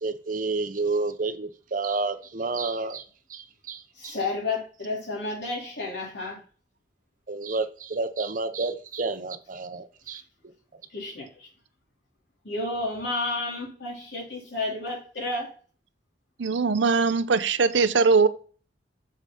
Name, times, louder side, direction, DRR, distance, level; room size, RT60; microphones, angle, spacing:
voice 1, 0.0-3.0 3.3-4.1 7.3-10.2, right 3 dB, 45° right, 0.7 m, -30 dB
voice 2, 4.0-6.4 10.9-11.5 12.4-15.5, left 2 dB, 75° left, 3.5 m, -31 dB
voice 3, 16.4-18.3, right 4 dB, 90° right, 0.6 m, -21 dB
7.3 x 4.8 x 4.1 m
head